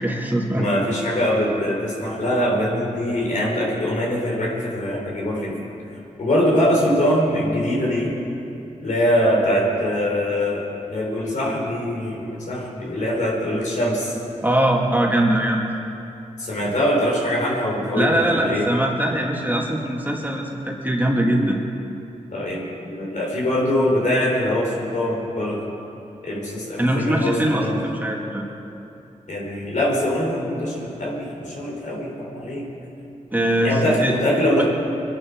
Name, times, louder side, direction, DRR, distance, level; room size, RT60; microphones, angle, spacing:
voice 1, 0.0-0.7 14.4-15.7 18.0-21.6 26.8-28.4 33.3-34.1 34.6-34.7, right 1 dB, 15° right, -1 dB, 2.4 m, -21 dB
voice 2, 0.6-5.6 6.2-8.1 8.8-14.1 16.4-18.7 22.3-25.6 26.2-27.8 29.3-32.6 33.6-34.6, equal, 65° left, -3 dB, 4.1 m, -23 dB
22.5 x 11.5 x 4.8 m, 2.8 s
cardioid pair, 55°, 13 cm